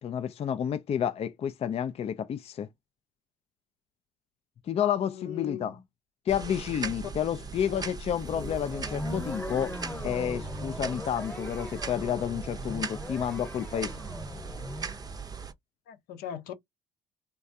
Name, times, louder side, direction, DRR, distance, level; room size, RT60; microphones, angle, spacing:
voice 1, 0.0-2.7 4.6-5.8 6.3-9.7 10.0-14.0, left 9 dB, 40° left, 0.4 m, -30 dB
voice 2, 4.8-5.8 6.8-6.9 15.9-16.5, left 10 dB, 70° left, 0.7 m, -40 dB
sound 1, 6.3-15.5, right 5 dB, 25° right, 0.6 m, -39 dB
sound 2, 8.2-15.0, left 1 dB, 10° left, 1.0 m, -39 dB
3.4 x 2.2 x 2.6 m
supercardioid pair, 65°, 16 cm